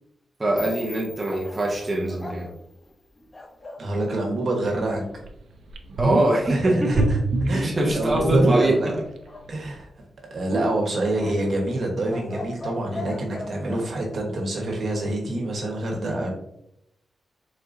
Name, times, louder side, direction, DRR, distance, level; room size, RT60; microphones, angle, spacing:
voice 1, 0.4-2.5 6.0-7.1 7.6-8.9, right 1 dB, 20° right, -3 dB, 0.6 m, -23 dB
sound 1, 0.6-3.5, left 4 dB, 65° left, 0.8 m, -46 dB
sound 2, 1.2-3.9 9.2-10.1 11.1-13.9, left 2 dB, 25° left, 0.5 m, -39 dB
voice 2, 3.8-5.0 6.5-7.2 7.5-8.9 9.5-9.9 10.3-16.3, right 1 dB, 60° right, 0 dB, 1.1 m, -26 dB
sound 3, 4.7-4.8 5.2-5.3 5.7-6.5 6.9-9.2 9.4-9.5, right 2 dB, 80° right, 0.5 m, -24 dB
4.0 x 3.7 x 2.6 m, 0.77 s
wide cardioid pair, 145°, 0 cm